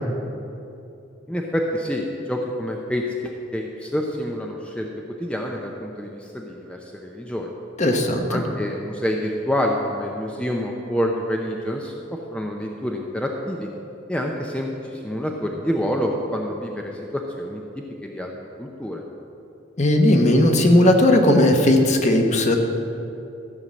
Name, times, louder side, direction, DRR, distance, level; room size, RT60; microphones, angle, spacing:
voice 1, 1.3-4.9 5.2-7.5 8.3-13.7 14.1-18.3 18.6-19.0, equal, 5° left, 0 dB, 0.6 m, -27 dB
voice 2, 7.8-8.4 19.8-22.6, left 1 dB, 35° left, 3 dB, 1.1 m, -17 dB
14.0 x 5.6 x 7.5 m, 2.8 s
head